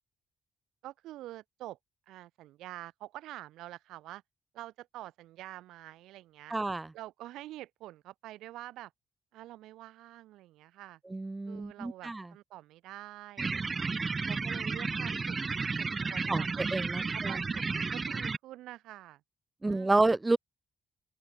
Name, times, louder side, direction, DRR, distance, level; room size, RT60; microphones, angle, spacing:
voice 1, 0.8-1.8 2.1-4.2 4.5-6.5 6.9-8.9 9.3-11.0 11.5-13.9 14.2-15.4 15.8-16.6 17.1-19.2 19.6-20.0, right 15 dB, 85° right, 3.3 m, -47 dB
voice 2, 6.5-6.9 11.1-12.2 16.3-16.4 16.7-17.4 19.6-20.4, right 2 dB, 25° right, 3.2 m, -29 dB
sound 1, 13.4-18.4, right 4 dB, 40° right, 4.0 m, -33 dB
open air
supercardioid pair, 55°, 0 cm